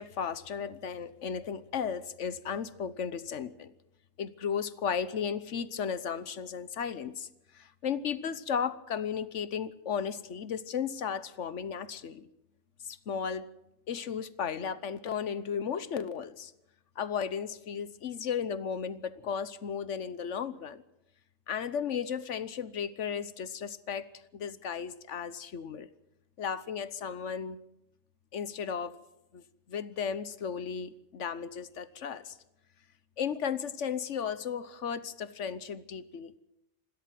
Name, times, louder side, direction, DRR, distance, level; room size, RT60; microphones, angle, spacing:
voice 1, 0.0-3.7 4.2-7.3 7.5-12.3 12.8-13.5 13.9-16.5 17.0-20.8 21.5-24.1 24.3-25.9 26.4-27.6 28.3-29.0 29.3-32.3 33.2-36.3, left 7 dB, 70° left, 15 dB, 1.3 m, -35 dB
27.5 x 13.0 x 7.6 m, 0.86 s
omnidirectional pair, 1.3 m